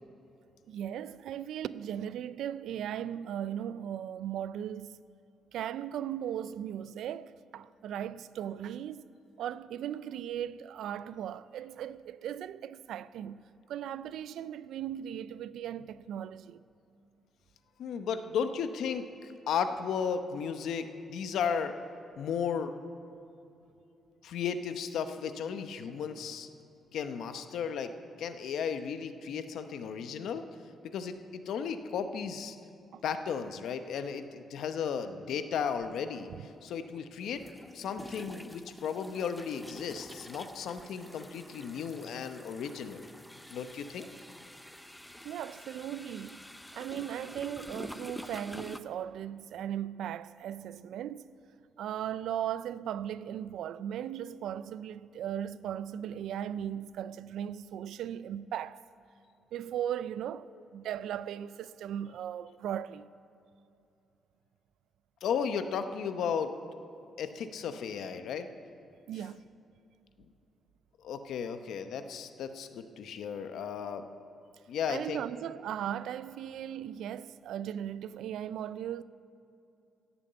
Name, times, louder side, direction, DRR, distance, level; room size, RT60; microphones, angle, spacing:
voice 1, 0.7-5.0 5.5-9.1 9.4-16.6 32.9-33.0 36.4-36.5 40.1-40.2 45.2-46.4 46.7-51.4 51.8-58.8 59.5-63.1 69.1-69.4 74.9-79.0, right 10 dB, 75° right, 0.3 m, -37 dB
voice 2, 17.8-21.7 22.2-22.7 24.2-26.5 26.9-27.9 28.2-30.4 30.8-31.2 31.5-32.6 33.0-36.3 36.6-37.4 37.7-43.1 43.5-44.1 65.2-66.5 67.2-68.5 71.0-74.0 74.7-75.2, left 7 dB, 70° left, 0.8 m, -34 dB
sound 1, 35.8-35.9 37.3-48.8, left 1 dB, 5° left, 0.4 m, -48 dB
16.0 x 7.1 x 8.8 m
cardioid pair, 170°, 0 cm